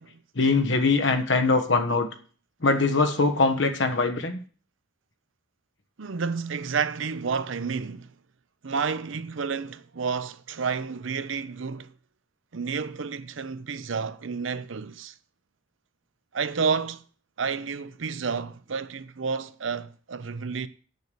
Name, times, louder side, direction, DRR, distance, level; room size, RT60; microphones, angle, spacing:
voice 1, 0.3-2.1 2.6-4.4, left 3 dB, 65° left, 1.3 m, -22 dB
voice 2, 6.0-8.1 8.6-11.9 12.5-15.1 16.3-17.0 17.4-20.7, right 5 dB, 75° right, 0.7 m, -30 dB
8.0 x 6.7 x 6.9 m
head